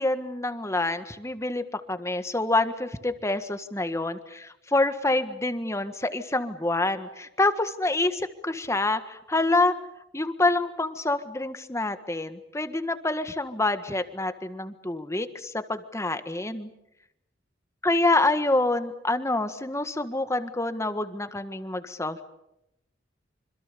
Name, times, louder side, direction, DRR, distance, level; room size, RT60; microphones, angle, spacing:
voice 1, 0.0-9.8 10.1-16.7 17.8-22.2, left 2 dB, 15° left, 10 dB, 1.6 m, -27 dB
26.5 x 26.5 x 6.9 m, 0.84 s
head